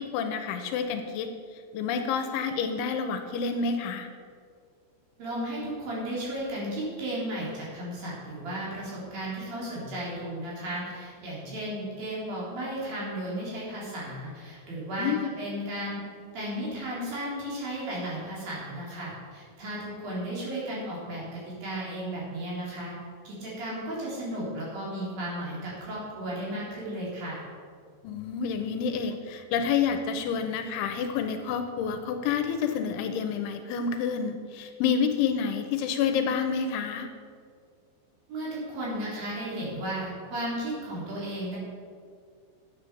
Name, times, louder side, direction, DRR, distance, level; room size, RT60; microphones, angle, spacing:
voice 1, 0.0-4.1 15.0-15.3 28.0-37.1, left 6 dB, 85° left, 7 dB, 3.0 m, -29 dB
voice 2, 5.2-16.0 16.3-22.9 23.2-27.4 38.3-41.6, right 1 dB, 50° right, -7 dB, 5.0 m, -34 dB
10.5 x 8.5 x 6.7 m, 2.1 s
omnidirectional pair, 5.6 m